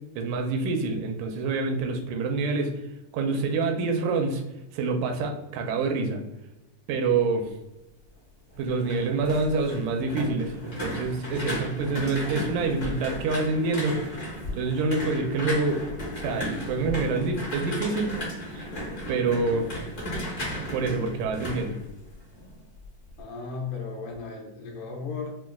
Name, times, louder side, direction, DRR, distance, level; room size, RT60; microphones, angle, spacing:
voice 1, 0.2-2.7 3.1-4.4 4.7-6.2 6.9-7.5 8.6-14.2 14.5-15.8 16.2-18.1 18.5-18.7 19.1-19.7 20.7-21.8, right 3 dB, 80° right, 4 dB, 2.1 m, -26 dB
sound 1, 8.5-22.5 22.8-23.2, left 1 dB, 55° left, 0.8 m, -35 dB
voice 2, 23.2-25.4, left 4 dB, 80° left, 1 dB, 2.2 m, -35 dB
5.7 x 2.3 x 2.3 m, 0.95 s
omnidirectional pair, 3.7 m